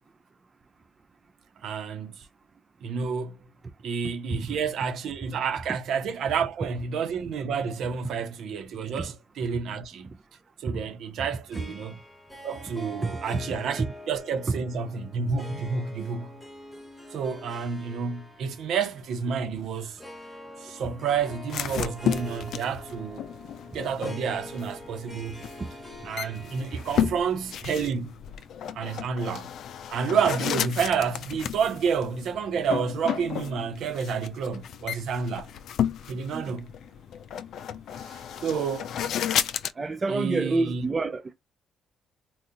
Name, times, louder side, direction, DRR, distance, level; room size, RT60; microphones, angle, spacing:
voice 1, 1.6-2.3 2.8-3.4 3.8-10.1 10.6-12.0 12.4-16.4 17.1-20.0 20.6-23.2 23.7-25.4 26.0-28.1 28.7-29.5 29.9-35.5 36.1-36.7 37.9-38.9 40.1-40.8, right 6 dB, 70° right, 0.8 m, -30 dB
Harp, 11.5-28.3, equal, 10° left, 1.1 m, -45 dB
sound 1, 21.5-39.7, left 9 dB, 65° left, 0.4 m, -33 dB
voice 2, 39.8-41.3, right 3 dB, 25° right, 0.5 m, -27 dB
3.7 x 2.4 x 2.7 m
cardioid pair, 110°, 0 cm